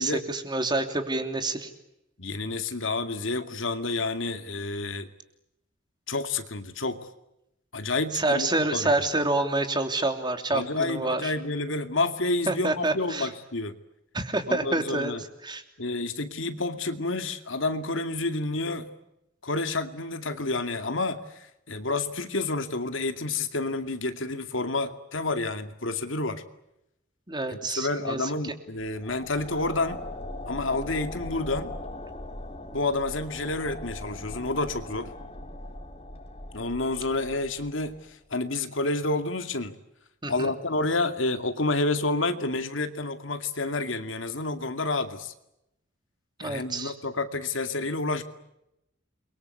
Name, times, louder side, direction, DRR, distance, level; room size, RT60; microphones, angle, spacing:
voice 1, 0.0-1.7 8.1-11.3 12.5-13.3 14.1-15.1 15.4-15.6 27.3-28.3 40.2-40.5 46.4-46.9, right 2 dB, 20° right, 6 dB, 3.1 m, -27 dB
voice 2, 2.2-5.1 6.1-7.1 7.7-8.9 10.5-13.7 14.5-15.2 15.8-18.9 19.4-26.4 27.5-30.0 30.5-31.7 32.7-35.1 36.5-39.7 40.3-45.3 46.4-48.2, left 2 dB, 70° left, 8 dB, 2.4 m, -29 dB
sound 1, 28.8-38.1, left 1 dB, 30° left, 3.5 m, -40 dB
29.5 x 23.5 x 8.3 m, 0.86 s
head